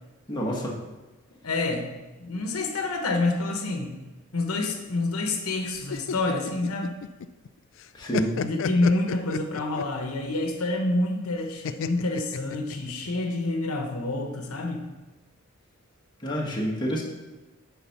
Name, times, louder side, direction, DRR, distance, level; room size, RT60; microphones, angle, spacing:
voice 1, 0.3-0.8 7.9-8.3 16.2-17.0, equal, 20° left, -3 dB, 1.3 m, -28 dB
voice 2, 1.4-1.9 2.2-3.9 4.3-7.0 8.3-14.8, left 2 dB, 85° left, 3 dB, 1.1 m, -27 dB
sound 1, 5.7-7.5 7.8-10.0 11.6-13.1, left 6 dB, 60° left, 0.4 m, -32 dB
9.5 x 4.1 x 5.9 m, 1.1 s
head